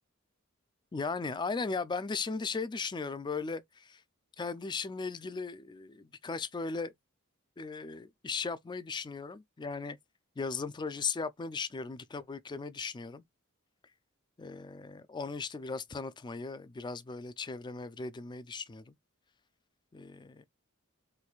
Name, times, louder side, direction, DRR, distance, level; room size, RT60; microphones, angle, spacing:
voice 1, 0.9-4.0 4.4-6.9 7.6-10.0 10.4-13.2 14.4-18.9 19.9-20.4, left 4 dB, 20° left, 0.3 m, -37 dB
4.4 x 2.6 x 2.3 m
head